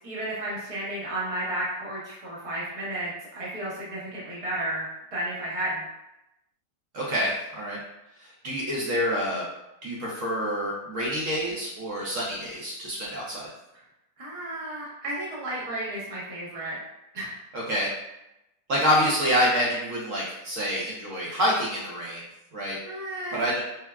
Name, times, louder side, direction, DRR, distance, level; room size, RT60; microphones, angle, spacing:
voice 1, 0.0-5.9 14.2-16.8 17.1-17.3 22.8-23.4, right 1 dB, 35° right, -7 dB, 0.5 m, -33 dB
voice 2, 6.9-7.8 8.2-9.5 9.8-13.5 17.5-17.9 18.7-22.2 22.5-22.8 23.3-23.6, equal, 60° right, -5 dB, 0.9 m, -27 dB
3.4 x 2.1 x 2.2 m, 0.89 s
omnidirectional pair, 1.8 m